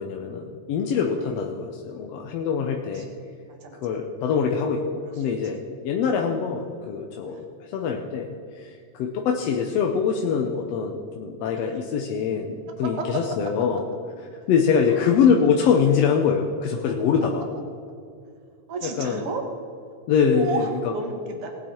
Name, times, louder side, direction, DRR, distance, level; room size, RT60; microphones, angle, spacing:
voice 1, 0.0-3.1 3.8-5.6 5.8-13.8 14.5-17.4 18.8-19.2 20.1-20.9, left 6 dB, 70° left, 2 dB, 1.7 m, -24 dB
voice 2, 3.5-3.8 5.0-5.3 7.3-7.5 11.5-11.7 12.8-13.0 15.0-15.2 18.7-19.4 20.3-21.5, right 4 dB, 55° right, 3 dB, 2.3 m, -33 dB
18.5 x 8.8 x 4.4 m, 2.4 s
omnidirectional pair, 3.4 m